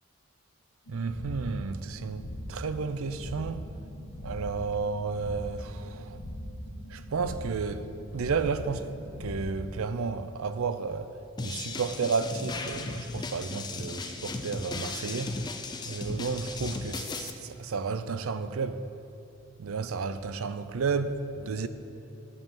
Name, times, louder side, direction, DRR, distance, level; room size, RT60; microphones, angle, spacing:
sound 1, 0.9-9.9, equal, 75° left, 1.1 m, -41 dB
voice 1, 0.9-2.2 2.5-3.7 4.2-6.2 6.9-7.9 8.1-8.9 9.2-11.1 11.4-15.4 15.9-18.8 19.6-21.7, right 5 dB, 85° right, 0.5 m, -32 dB
sound 2, 11.4-17.3, left 3 dB, 20° left, 0.4 m, -36 dB
9.8 x 5.6 x 7.2 m
head